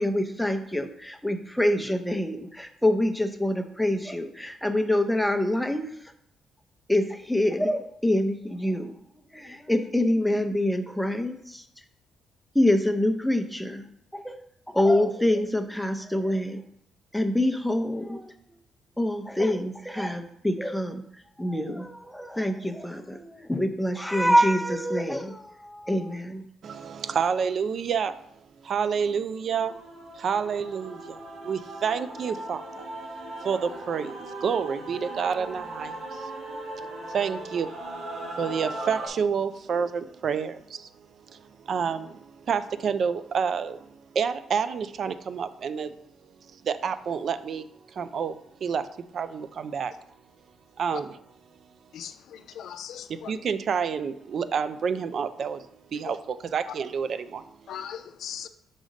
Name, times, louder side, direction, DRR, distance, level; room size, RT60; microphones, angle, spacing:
voice 1, 0.0-5.9 6.9-8.9 9.3-11.6 12.5-13.8 14.1-14.4 14.7-16.6 17.1-18.3 19.0-21.0 21.4-26.4, left 1 dB, 5° left, 7 dB, 0.6 m, -25 dB
voice 2, 26.6-29.7 30.1-32.9 33.4-36.4 36.9-45.9 46.4-49.9 50.8-51.2 53.1-57.8, right 6 dB, 55° right, 12 dB, 0.3 m, -29 dB
Male singing / Female singing / Musical instrument, 29.6-39.1, right 1 dB, 75° right, 1.5 m, -38 dB
voice 3, 51.9-53.3 56.1-56.2 57.7-58.5, left 9 dB, 75° left, 11 dB, 0.4 m, -39 dB
5.1 x 3.8 x 5.1 m, 0.72 s
cardioid pair, 90°, 0 cm